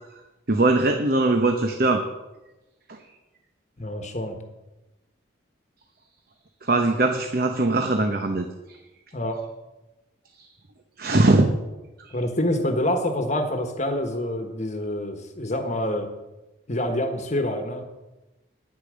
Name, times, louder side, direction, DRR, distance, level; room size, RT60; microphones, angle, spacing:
voice 1, 0.5-2.0 2.9-3.0 6.6-8.5 11.0-11.5, right 2 dB, 50° right, 5 dB, 0.9 m, -20 dB
voice 2, 3.8-4.4 9.1-9.4 12.1-16.1 16.7-17.8, left 1 dB, 35° left, 6 dB, 1.3 m, -26 dB
10.5 x 9.7 x 6.4 m, 1.0 s
head